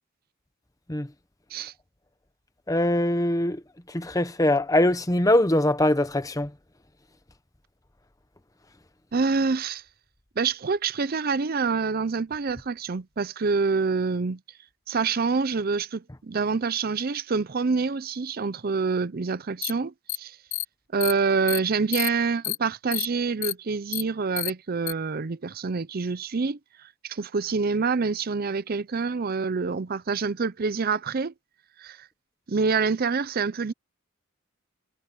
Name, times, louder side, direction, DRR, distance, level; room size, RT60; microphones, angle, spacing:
voice 1, 2.7-3.6 3.9-6.5, left 1 dB, 15° left, 1.0 m, -22 dB
voice 2, 9.1-9.8 10.4-14.4 14.9-20.4 20.9-31.3 31.8-32.1 32.5-33.7, right 4 dB, 45° right, 0.5 m, -26 dB
sound 1, 19.6-19.7 20.1-20.2 20.5-20.6 21.0-21.1 21.5-21.6 21.9-22.1 22.4-22.6 22.9-23.1 23.4-23.5 23.9-24.0 24.4-24.5 24.9-25.0, left 18 dB, 75° left, 0.7 m, -28 dB
head